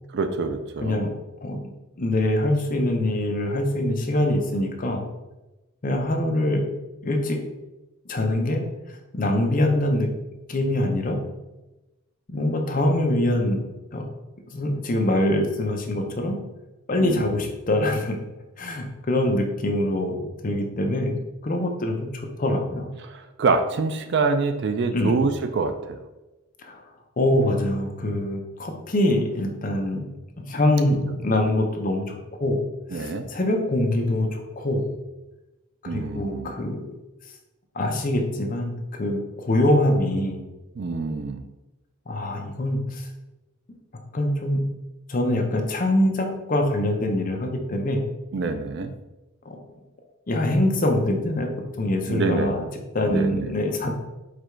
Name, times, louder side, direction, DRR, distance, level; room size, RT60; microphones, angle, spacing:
voice 1, 0.1-1.0 17.0-17.4 23.0-26.0 32.9-33.2 35.9-36.5 40.8-41.4 48.3-48.9 52.1-52.5 53.0-53.5 53.8-53.9, right 4 dB, 50° right, 8 dB, 0.4 m, -26 dB
voice 2, 0.8-1.1 1.4-1.6 2.0-5.0 5.8-6.6 7.0-7.4 8.1-8.7 9.1-10.1 10.5-11.2 12.3-14.1 14.5-16.4 16.9-18.2 18.6-22.9 24.9-25.1 26.6-26.8 27.2-30.1 30.5-32.6 32.9-34.9 35.8-36.8 37.7-40.4 42.1-43.0 44.1-44.7 45.1-48.0 49.5-49.6 50.3-51.5 51.8-52.6 52.9-53.9, left 1 dB, 40° left, 3 dB, 0.6 m, -24 dB
4.9 x 2.3 x 4.4 m, 1.0 s
head